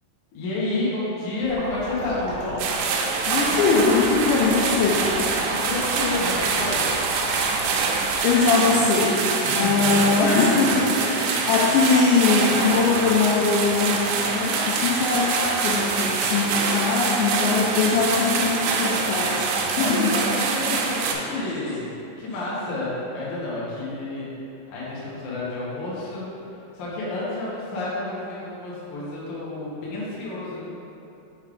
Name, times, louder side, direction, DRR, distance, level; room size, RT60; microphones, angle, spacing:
voice 1, 0.3-2.7 5.4-6.9 9.5-10.1 10.5-10.7 11.4-11.5 19.7-24.3 24.7-26.3 26.7-30.6, left 2 dB, 65° left, -8 dB, 2.0 m, -30 dB
sound 1, 1.4-8.2, right 1 dB, 70° right, 2.1 m, -34 dB
sound 2, 2.6-21.1, right 4 dB, 85° right, 3.1 m, -25 dB
voice 2, 3.3-5.1 8.2-20.1 21.3-21.5, left 4 dB, 85° left, -4 dB, 2.6 m, -22 dB
7.3 x 3.4 x 5.0 m, 2.8 s
omnidirectional pair, 5.8 m